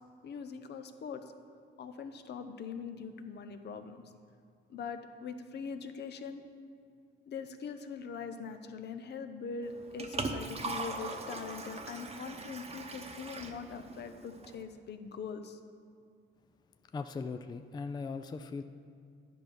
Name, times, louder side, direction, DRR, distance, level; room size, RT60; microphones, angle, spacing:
voice 1, 0.2-1.2 1.8-4.0 4.7-6.4 7.3-15.6, left 5 dB, 60° left, 8 dB, 0.7 m, -42 dB
Liquid, 9.6-14.6, right 3 dB, 30° right, 0.9 m, -40 dB
voice 2, 16.9-18.6, left 4 dB, 20° left, 9 dB, 0.4 m, -39 dB
10.5 x 6.1 x 5.3 m, 2.3 s
cardioid pair, 90°, 20 cm